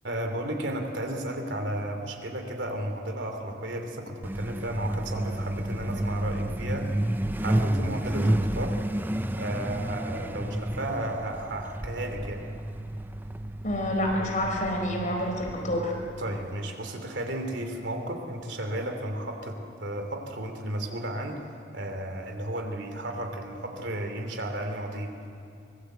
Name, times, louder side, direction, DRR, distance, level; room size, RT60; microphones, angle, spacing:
voice 1, 0.0-6.9 7.4-8.8 9.3-12.5 16.2-21.4 21.7-25.1, right 1 dB, 85° right, 5 dB, 3.0 m, -33 dB
Truck, 4.2-16.5, right 1 dB, 10° right, 0.6 m, -31 dB
voice 2, 13.6-15.9, left 1 dB, 45° left, 1 dB, 4.6 m, -28 dB
24.0 x 21.0 x 8.0 m, 2.6 s
head